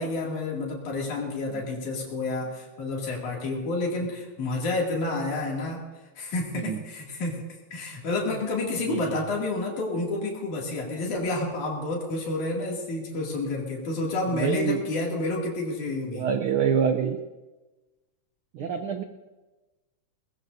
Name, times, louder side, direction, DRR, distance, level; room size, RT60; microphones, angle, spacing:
voice 1, 0.0-5.8 6.2-7.4 7.7-16.3 18.6-18.7, left 2 dB, 85° left, -2 dB, 4.1 m, -29 dB
voice 2, 8.9-9.2 14.3-14.8 16.1-17.2 18.5-19.0, right 7 dB, 85° right, 7 dB, 1.1 m, -26 dB
22.0 x 19.5 x 2.7 m, 1.2 s
omnidirectional pair, 3.4 m